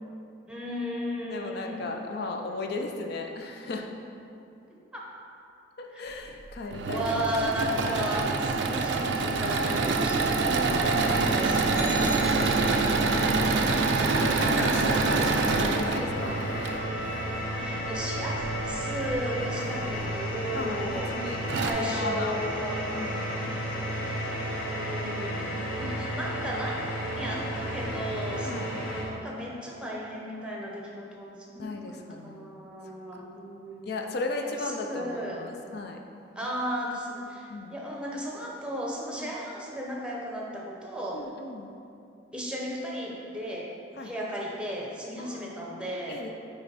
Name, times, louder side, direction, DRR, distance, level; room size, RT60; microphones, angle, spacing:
voice 1, 0.5-1.9 4.7-5.0 5.9-6.0 6.9-14.3 17.6-21.2 21.6-23.1 24.7-26.8 27.1-28.6 29.0-33.9 34.4-35.4 36.4-41.2 42.3-43.7 44.0-46.2, equal, 5° right, -3 dB, 0.7 m, -35 dB
voice 2, 1.3-3.9 5.8-7.0 7.7-7.9 9.6-9.8 14.1-16.4 19.6-19.8 20.5-21.4 21.8-22.4 22.9-23.3 28.4-28.7 31.6-32.5 33.9-36.0 37.5-37.7 39.2-39.3 41.1-41.7 44.0-44.1 45.2-46.3, left 2 dB, 55° left, 2 dB, 0.5 m, -35 dB
Engine / Mechanisms, 6.5-16.8 18.4-19.1 19.8-19.9 20.2-20.3 21.1-21.2 21.5-21.7, right 4 dB, 65° right, 0.4 m, -26 dB
sound 1, 10.7-29.0, equal, 80° left, 1.1 m, -32 dB
sound 2, 11.8-13.1, left 1 dB, 25° left, 1.5 m, -39 dB
5.6 x 4.4 x 4.1 m, 2.6 s
head